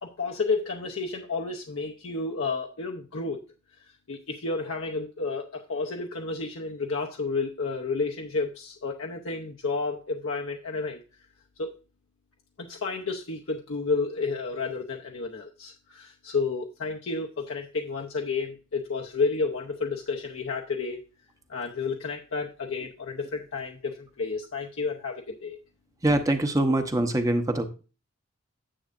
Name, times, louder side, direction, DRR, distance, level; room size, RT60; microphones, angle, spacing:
voice 1, 0.0-3.4 3.8-11.0 11.6-11.8 12.6-21.0 21.5-25.6, left 4 dB, 70° left, 1 dB, 0.8 m, -31 dB
voice 2, 26.0-27.6, right 1 dB, 15° right, 7 dB, 0.8 m, -23 dB
10.0 x 7.8 x 2.6 m, 0.33 s
head